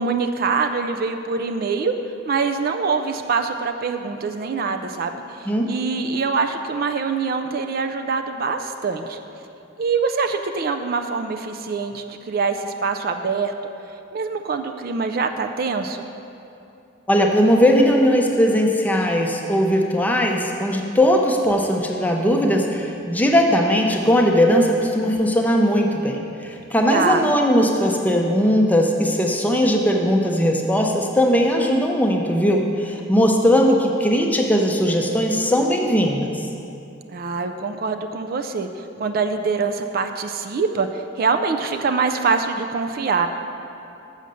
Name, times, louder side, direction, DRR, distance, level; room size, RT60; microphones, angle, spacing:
voice 1, 0.0-1.9 2.3-9.2 9.8-13.5 14.1-16.1 26.9-27.2 37.1-38.7 39.0-43.3, right 4 dB, 50° right, 6 dB, 0.4 m, -24 dB
voice 2, 17.1-36.3, equal, 10° left, 1 dB, 0.6 m, -19 dB
6.4 x 6.3 x 6.8 m, 2.7 s
head